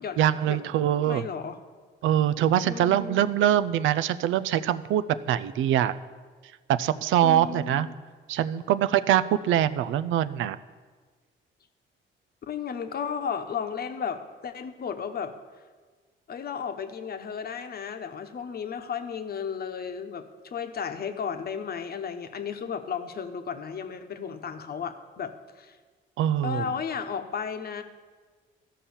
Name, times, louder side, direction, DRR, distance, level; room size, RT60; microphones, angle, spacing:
voice 1, 0.2-1.3 2.0-6.0 6.7-7.9 8.3-10.6 26.2-26.7, right 11 dB, 80° right, 14 dB, 0.5 m, -23 dB
voice 2, 1.0-1.6 2.6-3.2 7.2-7.9 12.4-15.3 16.3-25.8 26.4-27.8, left 6 dB, 50° left, 7 dB, 1.0 m, -34 dB
13.5 x 5.6 x 7.0 m, 1.4 s
cardioid pair, 90°, 20 cm